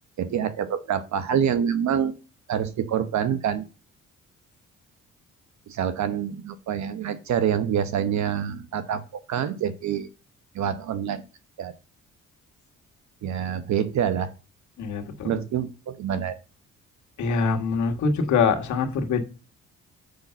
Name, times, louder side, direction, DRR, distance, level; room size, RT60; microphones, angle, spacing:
voice 1, 0.2-2.1 2.5-3.6 5.7-9.0 9.3-10.1 10.5-11.2 11.6-11.7 13.2-14.3 15.2-16.4, right 8 dB, 65° right, 11 dB, 1.0 m, -26 dB
voice 2, 14.8-15.4 17.2-19.2, left 5 dB, 70° left, 5 dB, 1.8 m, -24 dB
6.7 x 5.8 x 6.9 m, 0.32 s
cardioid pair, 90°, 30 cm